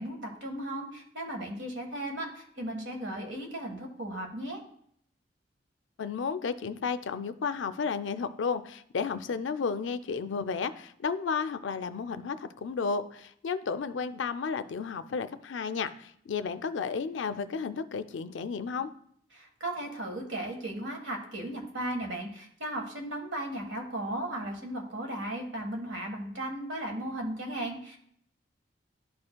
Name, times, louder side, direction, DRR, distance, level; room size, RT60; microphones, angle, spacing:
voice 1, 0.0-4.6 19.3-28.0, right 1 dB, 80° right, 2 dB, 1.4 m, -36 dB
voice 2, 6.0-18.9, left 5 dB, 80° left, 12 dB, 0.4 m, -33 dB
11.5 x 4.3 x 2.2 m, 0.66 s
head